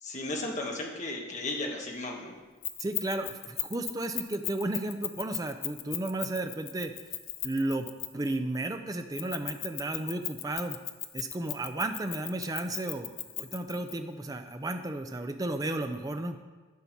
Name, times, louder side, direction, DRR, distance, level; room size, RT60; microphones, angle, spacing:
voice 1, 0.0-2.3, left 2 dB, 35° left, 0 dB, 1.2 m, -35 dB
Keys jangling, 2.6-8.3 9.2-13.9, left 14 dB, 65° left, 0.5 m, -36 dB
voice 2, 2.8-6.9 7.4-7.9 8.1-10.8 11.1-16.4, right 2 dB, 15° right, 7 dB, 0.5 m, -33 dB
10.5 x 5.7 x 4.5 m, 1.4 s
head